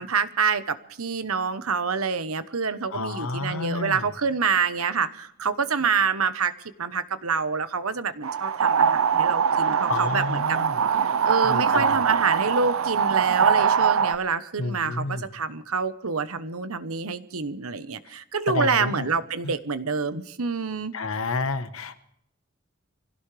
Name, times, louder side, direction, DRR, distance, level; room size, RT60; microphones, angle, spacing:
voice 1, 0.0-10.6 11.0-20.9, right 5 dB, 90° right, 12 dB, 1.1 m, -27 dB
voice 2, 2.9-4.1 9.9-10.8 11.4-12.0 14.6-15.3 18.5-19.1 19.4-19.5 20.9-22.0, left 3 dB, 75° left, 10 dB, 1.3 m, -30 dB
sound 1, 8.2-14.2, right 7 dB, 70° right, 0.6 m, -22 dB
25.5 x 16.5 x 3.4 m, 0.74 s
head